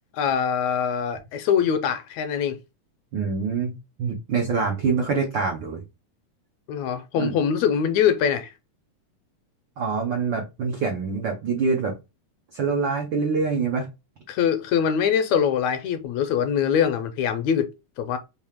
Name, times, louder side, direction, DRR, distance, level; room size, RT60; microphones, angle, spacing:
voice 1, 0.1-2.6 6.7-8.5 14.3-17.7 18.0-18.2, left 8 dB, 80° left, 1.8 m, -23 dB
voice 2, 3.1-3.7 4.0-5.8 7.2-7.3 9.8-11.9 12.5-13.9, right 5 dB, 85° right, 1.0 m, -25 dB
5.2 x 2.8 x 3.5 m
omnidirectional pair, 3.4 m